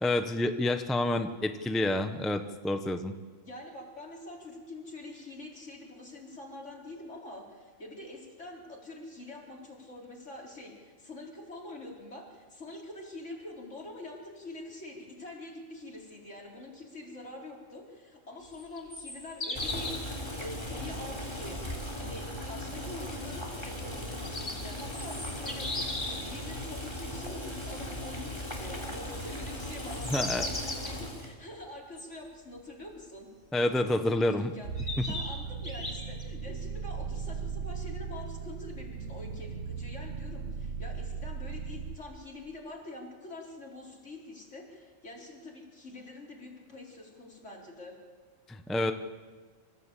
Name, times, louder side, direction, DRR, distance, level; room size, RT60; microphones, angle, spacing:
voice 1, 0.0-3.1 30.1-30.4 33.5-34.5 35.0-35.1 48.5-48.9, left 1 dB, ahead, 8 dB, 0.8 m, -28 dB
voice 2, 3.4-19.9 20.4-21.6 21.9-33.3 34.4-48.0, left 2 dB, 65° left, -2 dB, 4.5 m, -45 dB
sound 1, 18.5-20.1 24.0-26.3 29.7-30.9 32.0-32.1 33.9-34.0 34.8-36.2, left 2 dB, 85° left, 4.1 m, -37 dB
Boiling, 19.6-31.3, left 1 dB, 20° left, 3.5 m, -38 dB
sound 2, 34.6-42.0, right 5 dB, 75° right, 1.8 m, -37 dB
26.5 x 15.0 x 8.4 m, 1.5 s
omnidirectional pair, 1.3 m